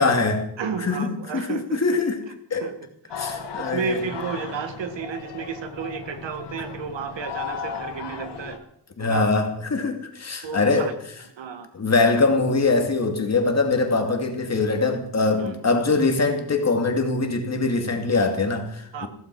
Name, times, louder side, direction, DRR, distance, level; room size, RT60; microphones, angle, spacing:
voice 1, 0.0-0.5 0.8-2.2 2.5-2.7 3.1-4.0 9.0-10.9 11.7-19.1, left 3 dB, 35° left, 2.5 m, -22 dB
voice 2, 0.6-1.8 2.5-2.7 3.6-8.6 9.0-9.5 10.4-10.9 11.4-11.7 15.4-15.5 18.9-19.1, right 6 dB, 80° right, 1.8 m, -32 dB
sound 1, 3.1-8.6, left 6 dB, 65° left, 2.0 m, -35 dB
15.5 x 14.5 x 4.8 m
wide cardioid pair, 145°, 44 cm